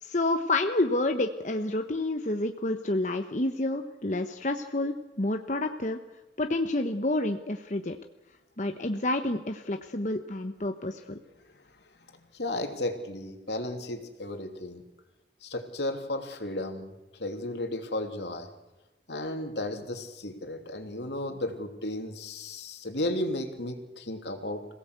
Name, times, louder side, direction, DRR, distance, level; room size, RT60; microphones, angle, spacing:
voice 1, 0.0-6.0 6.4-8.0 8.6-11.2, left 2 dB, 40° left, 5 dB, 1.0 m, -29 dB
voice 2, 12.1-14.8 15.4-16.9 17.2-18.5 19.1-24.6, left 1 dB, 75° left, 5 dB, 3.0 m, -34 dB
26.5 x 17.0 x 8.2 m, 1.1 s
head